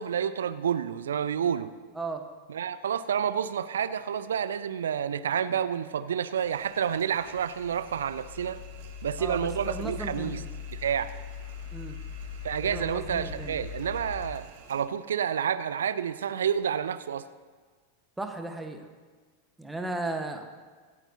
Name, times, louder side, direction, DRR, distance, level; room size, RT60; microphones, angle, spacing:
voice 1, 0.0-1.7 2.5-8.6 9.0-10.4 10.7-11.1 12.4-17.2, right 8 dB, 65° right, 14 dB, 0.5 m, -29 dB
sound 1, 6.3-14.8, right 7 dB, 50° right, 1.2 m, -53 dB
sound 2, 7.1-14.3, left 7 dB, 50° left, 2.3 m, -40 dB
voice 2, 9.2-10.5 11.7-12.0 12.6-13.6 18.2-18.9 19.6-20.4, right 2 dB, 5° right, 4 dB, 1.2 m, -36 dB
25.0 x 9.0 x 2.8 m, 1.5 s
figure-of-eight pair, 90°, 0 cm